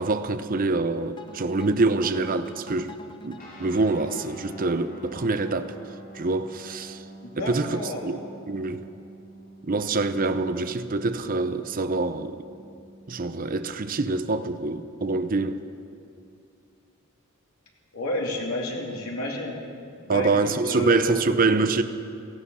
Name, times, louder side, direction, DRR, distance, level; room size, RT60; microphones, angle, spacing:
voice 1, 0.0-2.9 3.2-5.7 6.1-7.0 7.4-8.2 8.5-8.9 9.6-12.4 13.1-15.6 20.1-21.8, right 3 dB, 40° right, 0.6 m, -25 dB
sound 1, 1.2-6.3, left 2 dB, 20° left, 0.7 m, -46 dB
Guitar, 3.4-13.3, right 1 dB, 40° left, 3.1 m, -47 dB
voice 2, 7.2-8.0 17.9-19.5 20.0-21.4, left 1 dB, 85° left, 2.8 m, -31 dB
17.0 x 15.0 x 5.6 m
head